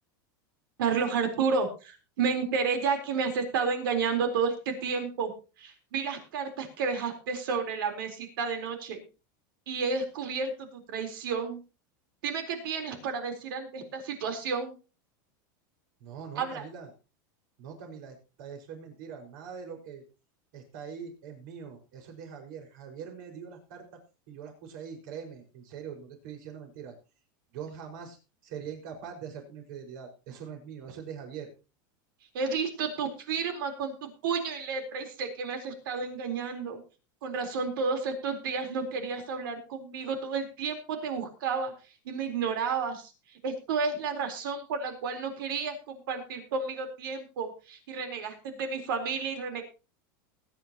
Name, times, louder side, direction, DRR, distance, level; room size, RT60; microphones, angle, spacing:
voice 1, 0.8-5.3 5.6-9.0 9.7-11.6 12.2-14.7 16.4-16.6 32.3-36.8 37.2-41.7 42.0-43.1 43.4-49.6, right 5 dB, 80° right, 5 dB, 4.0 m, -31 dB
voice 2, 16.0-16.9 17.6-20.0 20.5-23.9 24.3-27.0 27.5-31.5, right 7 dB, 65° right, 3 dB, 5.5 m, -43 dB
20.5 x 10.0 x 3.0 m, 0.32 s
supercardioid pair, 155°, 11 cm